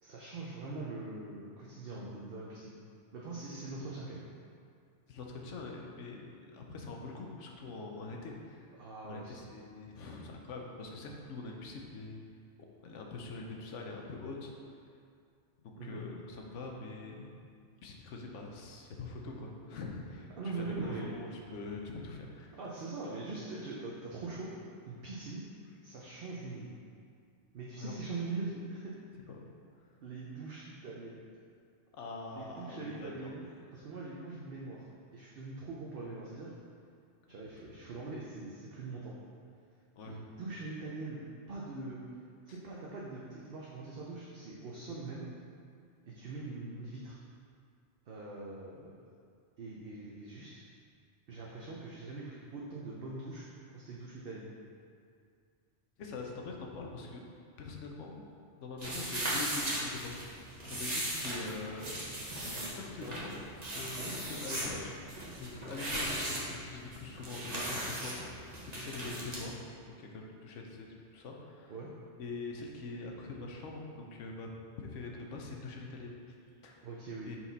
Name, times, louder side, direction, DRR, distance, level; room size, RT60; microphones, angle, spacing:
voice 1, 0.0-2.8 3.1-4.2 8.8-9.5 11.1-11.2 15.7-16.0 20.4-21.2 22.5-24.5 24.9-25.5 25.8-26.7 27.5-29.0 30.0-31.2 32.3-34.9 35.1-36.5 37.3-39.2 40.0-41.2 41.5-42.0 42.5-45.3 46.1-47.2 48.1-48.9 49.6-50.6 51.3-53.4 53.7-54.5 63.9-64.1 71.7-71.9 76.8-77.3, right 3 dB, 55° right, -4 dB, 0.9 m, -42 dB
voice 2, 5.1-8.7 9.0-12.2 12.8-14.5 15.6-17.3 17.8-22.6 27.8-28.0 29.3-29.4 31.9-33.1 39.9-40.2 42.5-42.6 56.0-57.2 57.6-58.2 58.6-63.4 63.7-71.7 72.2-74.5 74.8-76.3 76.6-76.9 77.2-77.4, left 3 dB, 80° left, 0 dB, 1.1 m, -44 dB
sound 1, 58.8-69.4, right 1 dB, 35° right, 1.2 m, -38 dB
5.8 x 4.4 x 4.0 m, 2.3 s
omnidirectional pair, 1.2 m